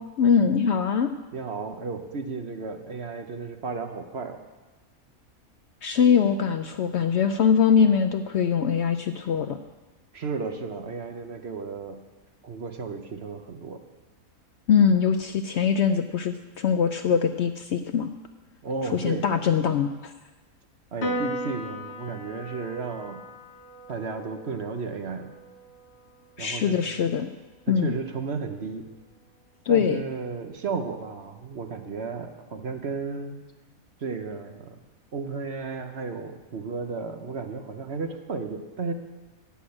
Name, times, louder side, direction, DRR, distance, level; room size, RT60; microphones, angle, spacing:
voice 1, 0.2-1.1 5.8-9.6 14.7-18.1 18.9-20.1 26.4-27.3 27.7-28.0 29.7-30.0, left 7 dB, 65° left, 9 dB, 0.7 m, -22 dB
voice 2, 1.3-4.4 10.1-12.0 12.4-13.8 18.6-19.3 20.9-23.3 23.9-25.3 26.4-26.8 27.7-28.9 29.7-33.4 34.0-34.8 35.1-38.9, right 4 dB, 50° right, 6 dB, 1.1 m, -33 dB
Piano, 21.0-27.7, equal, 50° left, 1.6 m, -38 dB
14.0 x 6.2 x 8.6 m, 1.2 s
omnidirectional pair, 1.5 m